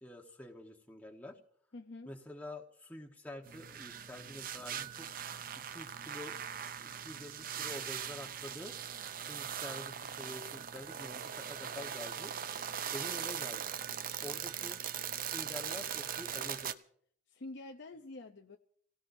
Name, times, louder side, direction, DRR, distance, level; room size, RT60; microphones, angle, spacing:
voice 1, 0.0-1.4 2.1-5.1 5.6-6.4 6.8-8.8 9.2-12.3 12.9-13.7 14.2-14.8 15.3-16.7, left 1 dB, 10° left, 2 dB, 1.2 m, -47 dB
voice 2, 1.7-2.1 17.3-18.6, left 2 dB, 60° left, 4 dB, 0.7 m, -47 dB
sound 1, 3.4-16.7, right 8 dB, 45° right, 0.5 m, -40 dB
28.0 x 17.0 x 2.7 m, 0.62 s
head